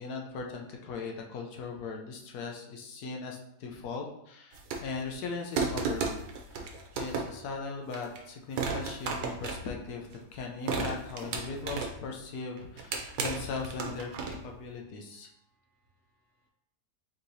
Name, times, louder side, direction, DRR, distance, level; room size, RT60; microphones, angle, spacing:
voice 1, 0.0-6.1 6.5-15.3, left 4 dB, 70° left, 1 dB, 1.2 m, -39 dB
sound 1, 4.5-5.1 5.6-7.5 7.9-8.2 8.6-10.2 10.7-12.1 12.6-14.5, right 4 dB, 75° right, 1.2 m, -34 dB
voice 2, 15.3-16.5, right 2 dB, 60° right, -1 dB, 0.8 m, -73 dB
4.5 x 3.7 x 2.7 m, 0.77 s
omnidirectional pair, 1.7 m